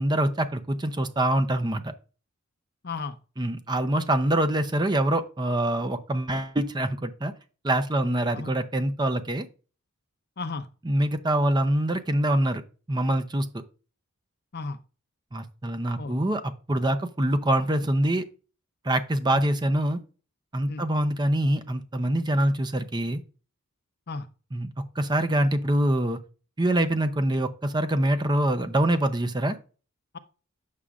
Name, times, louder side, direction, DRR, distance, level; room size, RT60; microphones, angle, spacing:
voice 1, 0.0-1.9 3.4-7.3 7.6-9.5 10.8-12.6 12.9-13.5 15.3-18.2 18.8-20.0 20.5-23.2 24.5-24.7 25.0-26.2 26.6-29.6, right 1 dB, 20° right, 0.6 m, -25 dB
voice 2, 2.8-3.2 8.3-8.5 10.4-10.7 14.5-14.8 16.0-16.2 19.3-19.5 20.7-20.8 24.1-24.3 30.1-30.2, left 3 dB, 45° left, 0.6 m, -34 dB
8.4 x 6.2 x 2.4 m
head